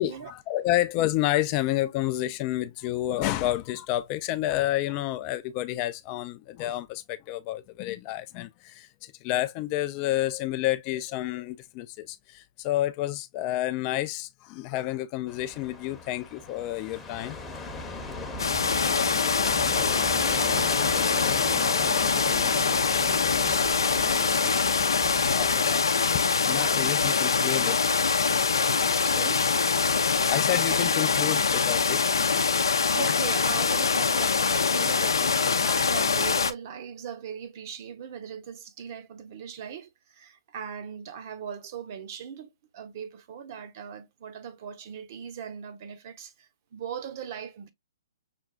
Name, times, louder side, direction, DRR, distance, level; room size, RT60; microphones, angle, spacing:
voice 1, 0.0-17.7 25.2-25.9 26.4-27.8 28.6-29.3 30.3-32.0, left 14 dB, 30° left, 0.3 m, -30 dB
sound 1, 15.3-25.6, left 3 dB, 10° left, 0.8 m, -38 dB
sound 2, 18.4-36.5, left 5 dB, 85° left, 0.5 m, -24 dB
voice 2, 20.0-25.3 27.0-28.0 29.0-29.5 32.9-47.7, right 7 dB, 45° right, 0.8 m, -40 dB
5.9 x 2.3 x 2.3 m
hypercardioid pair, 145°, 2 cm